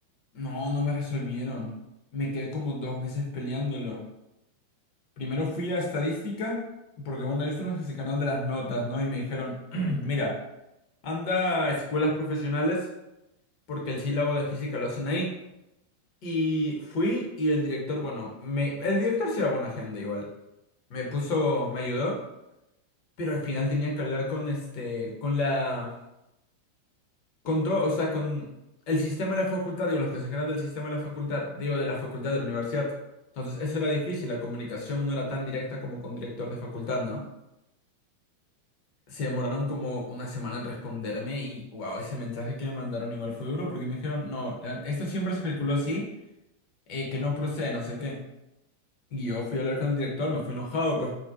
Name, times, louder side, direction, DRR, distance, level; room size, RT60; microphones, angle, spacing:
voice 1, 0.3-1.7 2.1-4.0 5.2-6.6 7.0-10.3 11.0-12.8 13.7-15.3 16.2-20.3 20.9-22.2 23.2-25.9 27.4-28.5 28.9-32.9 33.4-37.2 39.1-46.1 46.9-48.2 49.1-51.1, left 2 dB, 45° left, -1 dB, 0.6 m, -29 dB
2.5 x 2.1 x 2.5 m, 0.90 s
figure-of-eight pair, 90°, 0 cm